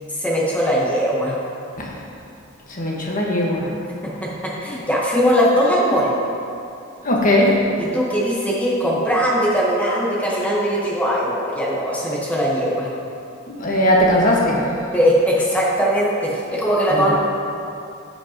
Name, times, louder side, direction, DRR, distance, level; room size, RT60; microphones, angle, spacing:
voice 1, 0.2-1.3 4.0-6.1 7.8-12.9 14.9-17.1, equal, 5° left, -6 dB, 1.1 m, -20 dB
voice 2, 2.7-3.7 7.0-7.6 13.6-14.6 16.9-17.1, left 1 dB, 40° left, -3 dB, 1.4 m, -18 dB
14.5 x 5.2 x 2.9 m, 2.6 s
head